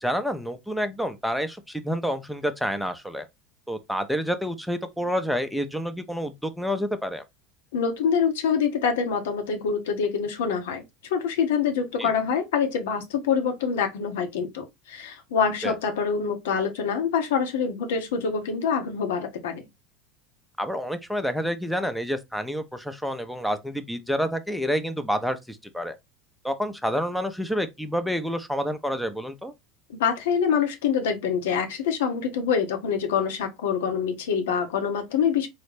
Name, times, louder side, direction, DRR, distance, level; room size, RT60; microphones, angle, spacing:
voice 1, 0.0-3.3 3.7-7.2 12.0-12.1 15.6-15.7 20.6-25.9 26.4-29.5, equal, ahead, 0.6 m, -28 dB
voice 2, 7.7-10.8 11.1-19.6 29.9-35.5, left 6 dB, 75° left, 0.8 m, -25 dB
3.9 x 2.1 x 3.2 m
hypercardioid pair, 80°, 0 cm